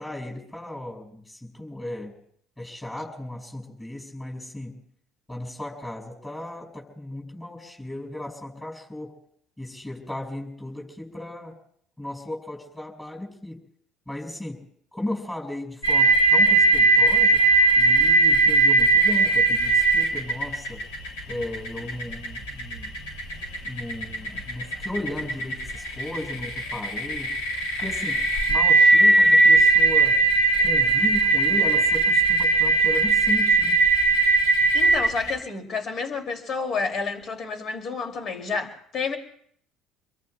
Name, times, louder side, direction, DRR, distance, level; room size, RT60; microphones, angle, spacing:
voice 1, 0.0-2.1 2.6-4.8 5.3-9.1 9.6-11.6 12.0-13.6 14.1-14.6 14.9-17.4 17.8-20.8 21.3-22.9 23.6-27.3 27.8-30.2 30.6-33.8, left 1 dB, 15° left, 0 dB, 5.9 m, -35 dB
sound 1, 15.8-35.3, right 3 dB, 80° left, 2.7 m, -19 dB
voice 2, 34.7-39.2, left 4 dB, 50° left, 4 dB, 2.6 m, -30 dB
28.0 x 22.5 x 2.3 m, 0.64 s
hypercardioid pair, 70°, 0 cm